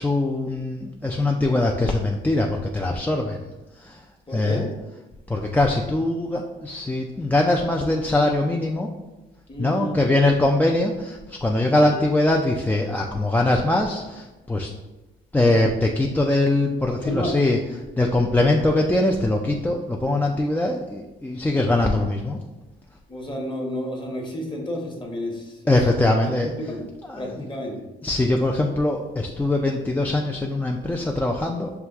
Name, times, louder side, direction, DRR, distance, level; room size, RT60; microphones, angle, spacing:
voice 1, 0.0-3.4 3.8-4.0 4.3-4.6 5.3-8.9 9.6-14.7 15.3-17.6 18.0-22.4 25.7-26.5 27.1-27.2 28.0-31.7, left 2 dB, 10° left, 0 dB, 0.3 m, -22 dB
voice 2, 4.3-4.7 9.5-10.2 11.8-11.9 17.0-17.3 23.1-26.3 26.7-26.9 27.1-27.9, equal, 25° left, 0 dB, 1.1 m, -31 dB
5.9 x 2.3 x 3.4 m, 1.1 s
cardioid pair, 90°, 20 cm